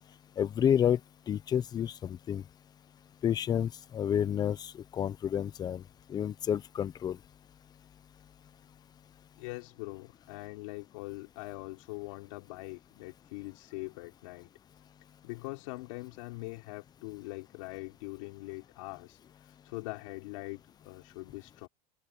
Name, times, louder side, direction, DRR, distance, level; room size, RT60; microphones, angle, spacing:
voice 1, 0.4-1.0 1.3-2.4 3.2-5.8 6.1-7.2, left 9 dB, 25° left, 0.7 m, -29 dB
voice 2, 9.4-14.5 15.2-21.7, left 24 dB, 70° left, 4.3 m, -43 dB
supercardioid pair, 145°, 17 cm